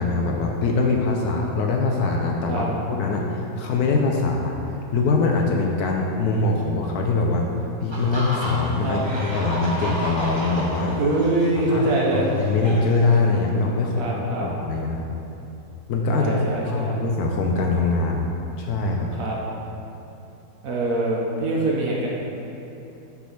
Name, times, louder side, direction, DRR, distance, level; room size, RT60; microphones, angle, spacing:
voice 1, 0.0-4.6 4.9-7.5 7.8-11.0 11.7-15.1 15.9-18.3 18.6-19.1, left 3 dB, 70° left, 0 dB, 1.0 m, -23 dB
sound 1, 7.9-13.2, right 1 dB, 30° right, 0.5 m, -32 dB
voice 2, 10.9-12.3 14.0-14.5 16.1-17.0 19.1-19.4 20.6-22.1, right 2 dB, 60° right, -3 dB, 1.0 m, -24 dB
6.0 x 3.6 x 5.6 m, 2.9 s
omnidirectional pair, 1.9 m